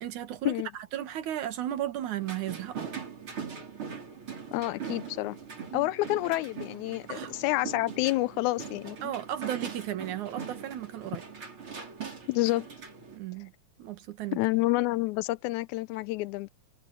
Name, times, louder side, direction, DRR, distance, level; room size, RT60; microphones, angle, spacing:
voice 1, 0.0-2.9 5.7-5.9 7.1-7.3 9.0-11.2 13.1-13.5 13.8-14.4, right 12 dB, 75° right, 3.0 m, -35 dB
sound 1, 2.2-13.2, right 6 dB, 45° right, 4.8 m, -41 dB
voice 2, 4.5-5.4 5.7-9.0 12.3-12.7 14.3-16.5, left 19 dB, 80° left, 2.0 m, -28 dB
omnidirectional pair, 3.5 m